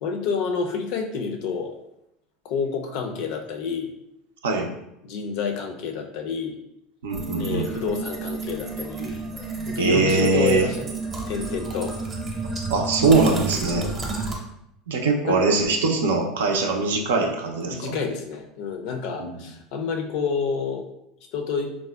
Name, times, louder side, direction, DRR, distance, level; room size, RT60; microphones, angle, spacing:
voice 1, 0.0-1.7 2.4-3.9 5.0-6.6 7.4-9.2 9.7-11.0 11.3-12.0 13.6-14.0 15.3-15.4 17.7-20.9 21.3-21.8, left 5 dB, 65° left, 4 dB, 0.4 m, -29 dB
voice 2, 7.0-7.7 9.8-10.7 12.7-13.9 14.9-18.0 19.2-19.3, right 3 dB, 85° right, 2 dB, 0.4 m, -22 dB
sound 1, 7.1-14.4, right 3 dB, 30° right, 0.7 m, -31 dB
3.5 x 2.0 x 2.3 m, 0.81 s
hypercardioid pair, 90°, 0 cm